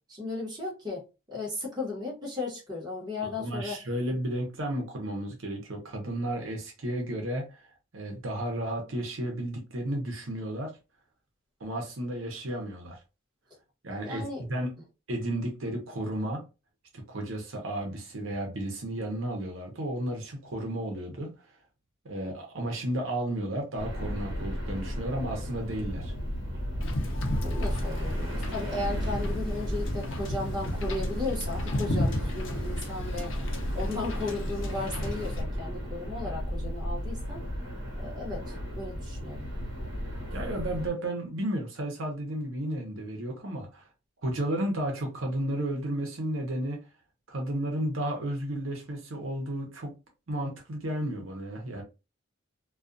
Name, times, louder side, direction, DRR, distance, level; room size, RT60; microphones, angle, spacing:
voice 1, 0.1-1.0 1.3-3.8 14.0-14.6 27.4-37.4 37.9-39.5, left 2 dB, 20° right, 1.0 m, -35 dB
voice 2, 3.4-7.7 7.9-10.8 11.6-13.0 13.8-14.7 15.1-16.5 16.9-21.3 22.0-26.1 40.3-43.9 44.2-46.8 47.3-49.9 50.3-51.8, right 1 dB, 80° right, 0.8 m, -33 dB
sound 1, 23.8-40.9, equal, 55° right, 1.1 m, -34 dB
Wind / Boat Water vehicle, 26.8-35.4, left 1 dB, 70° left, 0.6 m, -35 dB
2.4 x 2.4 x 2.5 m
head